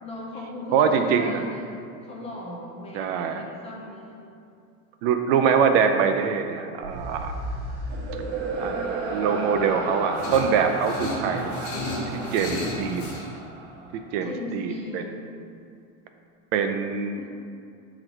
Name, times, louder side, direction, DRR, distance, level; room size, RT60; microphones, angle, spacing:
voice 1, 0.0-4.2 12.1-12.6 14.2-15.2 17.1-17.3, left 2 dB, 15° left, -3 dB, 0.4 m, -38 dB
voice 2, 0.7-1.4 2.9-3.4 5.0-7.4 8.6-12.0 12.3-13.1 14.1-15.0 16.5-17.3, right 6 dB, 50° right, 6 dB, 0.4 m, -24 dB
sound 1, 6.8-14.2, right 2 dB, 75° right, 1.2 m, -33 dB
sound 2, 10.2-13.3, left 1 dB, 35° left, 1.4 m, -33 dB
6.5 x 3.9 x 4.5 m, 2.4 s
supercardioid pair, 160°, 41 cm